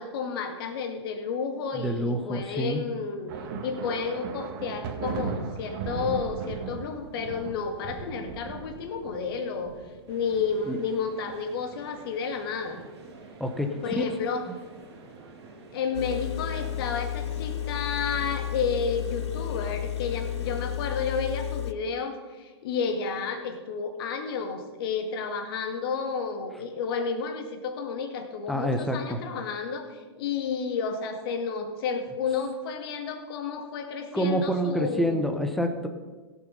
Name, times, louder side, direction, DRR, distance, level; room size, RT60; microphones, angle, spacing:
voice 1, 0.0-3.3 3.6-9.7 10.1-12.8 13.8-14.4 15.7-35.3, left 5 dB, 60° left, 5 dB, 2.1 m, -31 dB
voice 2, 1.7-2.8 10.7-10.8 13.4-14.0 28.5-29.2 34.1-35.9, equal, ahead, 5 dB, 1.1 m, -27 dB
sound 1, 3.3-10.6, right 5 dB, 55° right, 1.9 m, -37 dB
sound 2, 10.1-20.7, right 3 dB, 75° right, 3.0 m, -48 dB
Engine, 15.9-21.7, left 11 dB, 85° left, 0.6 m, -32 dB
16.5 x 6.9 x 5.5 m, 1.3 s
hypercardioid pair, 115°, 14 cm